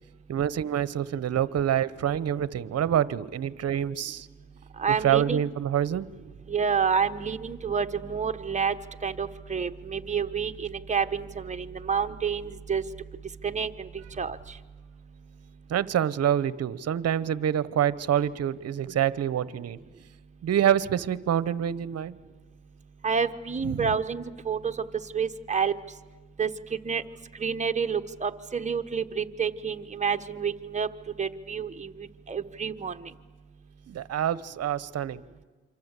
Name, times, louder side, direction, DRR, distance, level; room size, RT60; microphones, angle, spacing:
voice 1, 0.3-4.3 5.0-6.1 15.7-19.8 20.4-22.1 23.6-23.9 33.9-35.2, right 10 dB, 55° right, 17 dB, 0.9 m, -26 dB
voice 2, 4.8-5.4 6.5-8.8 9.0-12.8 13.4-13.9 14.2-14.6 23.0-24.8 25.1-25.7 26.4-26.5 26.8-27.0 27.4-30.9 31.2-33.1, right 6 dB, 25° right, 7 dB, 1.1 m, -29 dB
27.5 x 25.5 x 8.2 m, 1.4 s
cardioid pair, 90°, 30 cm